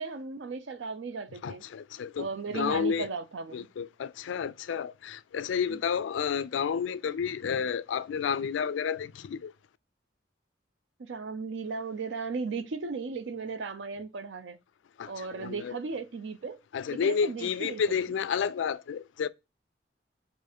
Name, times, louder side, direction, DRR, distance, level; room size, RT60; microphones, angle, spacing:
voice 1, 0.0-1.6 2.2-3.7 5.7-5.8 11.0-14.6 15.1-16.6 16.9-18.0, right 4 dB, 70° right, 0.5 m, -36 dB
voice 2, 1.4-2.3 2.5-3.1 3.5-9.5 15.0-15.8 16.7-19.3, left 6 dB, 75° left, 0.3 m, -31 dB
4.7 x 2.5 x 4.3 m
head